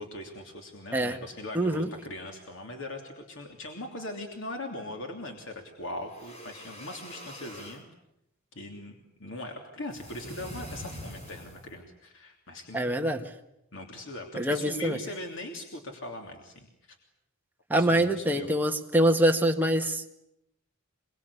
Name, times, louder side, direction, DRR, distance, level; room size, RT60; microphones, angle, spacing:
voice 1, 0.0-7.8 8.5-13.0 13.7-17.0 17.8-18.5, left 1 dB, 65° left, 3 dB, 3.1 m, -40 dB
voice 2, 1.5-1.9 12.7-13.2 14.3-15.0 17.7-20.1, right 1 dB, 10° right, 3 dB, 1.7 m, -25 dB
sound 1, 6.0-7.8 9.9-11.8, left 1 dB, 30° left, 4.4 m, -44 dB
25.5 x 23.0 x 8.5 m, 0.82 s
head